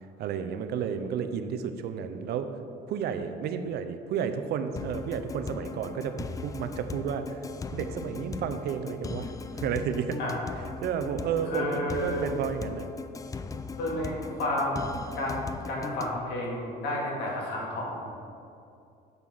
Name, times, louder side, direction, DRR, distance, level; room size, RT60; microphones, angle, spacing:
voice 1, 0.2-2.5 2.9-7.4 7.7-9.3 9.6-10.2 10.8-12.9, right 7 dB, 70° right, 8 dB, 0.6 m, -31 dB
sound 1, 4.8-16.2, left 4 dB, 20° left, 0.3 m, -38 dB
voice 2, 11.5-12.2 13.8-14.8 15.1-15.4 15.7-18.3, left 1 dB, 85° left, -3 dB, 2.2 m, -31 dB
6.8 x 5.6 x 6.2 m, 2.5 s
cardioid pair, 110°, 17 cm